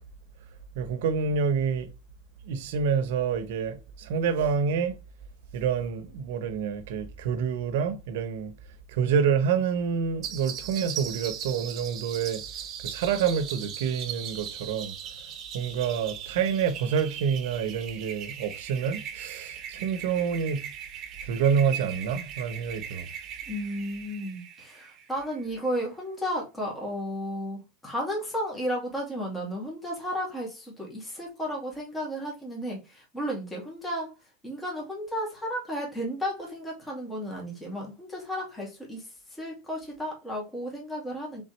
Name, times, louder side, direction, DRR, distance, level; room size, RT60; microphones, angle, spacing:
voice 1, 0.7-1.9 2.4-5.0 5.5-8.5 8.9-12.4 12.8-14.9 15.5-20.7 21.2-23.1, right 6 dB, 75° right, 0.9 m, -27 dB
sound 1, 10.2-25.4, right 9 dB, 40° right, 1.1 m, -39 dB
voice 2, 23.5-34.1 34.4-41.4, equal, 10° left, 2.1 m, -33 dB
3.9 x 3.9 x 3.2 m
supercardioid pair, 130°, 0 cm